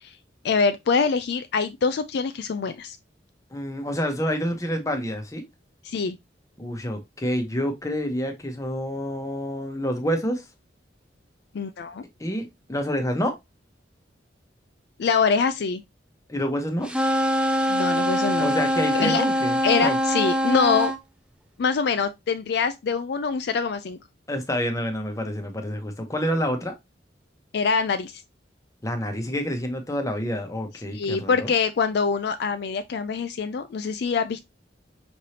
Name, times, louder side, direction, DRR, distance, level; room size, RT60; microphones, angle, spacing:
voice 1, 0.4-3.0 5.8-6.2 11.5-12.0 15.0-15.8 17.7-18.5 18.9-19.2 19.6-20.9 21.6-24.0 27.5-28.1 30.9-34.4, left 5 dB, 65° left, 0.4 m, -24 dB
voice 2, 3.5-5.4 6.6-10.4 12.2-13.3 16.3-16.9 18.4-20.0 24.3-26.7 28.8-31.5, equal, 20° left, 0.9 m, -28 dB
sound 1, 16.8-21.0, equal, 5° right, 0.4 m, -23 dB
5.3 x 3.2 x 2.8 m
head